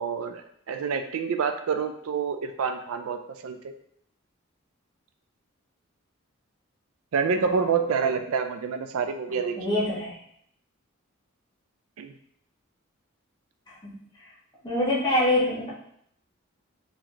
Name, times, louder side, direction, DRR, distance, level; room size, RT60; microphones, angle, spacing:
voice 1, 0.0-3.7 7.1-9.6 12.0-12.1, right 6 dB, 80° right, 8 dB, 0.4 m, -27 dB
voice 2, 7.3-7.8 9.5-10.2 13.8-13.9 14.6-15.7, left 1 dB, 20° left, -7 dB, 1.2 m, -25 dB
3.9 x 2.9 x 3.0 m, 0.69 s
head